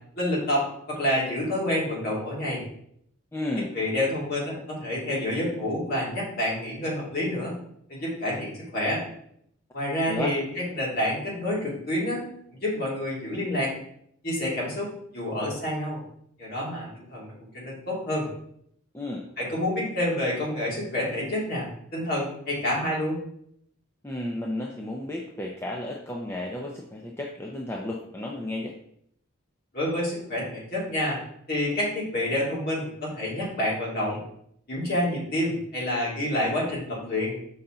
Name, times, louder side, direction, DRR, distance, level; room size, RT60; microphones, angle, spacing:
voice 1, 0.2-2.6 3.7-7.6 7.9-9.0 9.7-12.2 12.5-13.7 14.2-16.0 16.4-18.3 19.4-21.7 21.9-23.2 29.7-31.2 31.5-34.2 34.7-37.5, left 1 dB, 45° left, -5 dB, 2.6 m, -28 dB
voice 2, 3.3-3.7 10.1-10.4 18.9-19.3 24.0-28.7, left 1 dB, 10° left, -1 dB, 0.6 m, -33 dB
5.8 x 5.6 x 3.8 m, 0.69 s
head